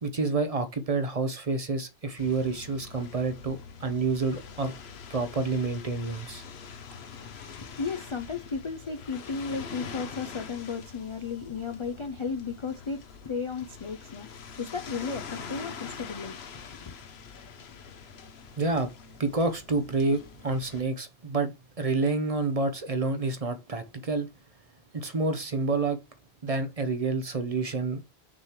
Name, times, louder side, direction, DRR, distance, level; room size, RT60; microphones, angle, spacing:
voice 1, 0.0-4.7 5.1-6.4 18.6-18.9 19.2-24.3 24.9-26.0 26.4-28.0, right 3 dB, 40° right, 0.7 m, -28 dB
sound 1, 2.2-20.8, left 6 dB, 80° left, 1.0 m, -44 dB
voice 2, 7.2-17.0, left 5 dB, 45° left, 0.4 m, -35 dB
6.1 x 3.2 x 5.7 m
omnidirectional pair, 1.1 m